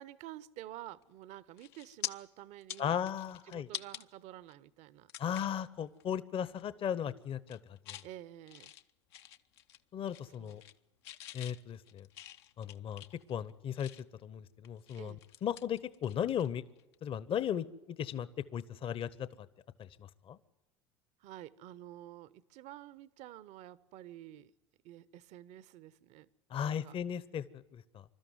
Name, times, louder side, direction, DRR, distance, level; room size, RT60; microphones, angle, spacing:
voice 1, 0.0-3.0 3.5-5.5 8.0-8.7 10.4-10.6 15.0-15.2 21.2-24.5 24.8-26.3 26.6-26.9, right 13 dB, 55° right, 18 dB, 0.9 m, -50 dB
sound 1, 1.0-1.2 1.6-2.1 2.5-4.0 4.5-4.6 5.1-5.6 6.0-6.2 6.5-6.9 7.3-8.1 8.5-9.8 10.1-10.8 11.0-14.2 14.6-16.5 16.7-16.9 18.8-19.0, left 12 dB, 65° left, 0.9 m, -46 dB
voice 2, 2.8-3.7 5.2-8.0 9.9-10.6 11.3-12.1 12.6-13.0 13.3-13.9 14.2-16.6 17.0-19.5 19.8-20.4 26.5-28.0, left 9 dB, 40° left, 16 dB, 1.0 m, -36 dB
26.5 x 13.0 x 9.4 m, 1.1 s
hypercardioid pair, 75°, 14 cm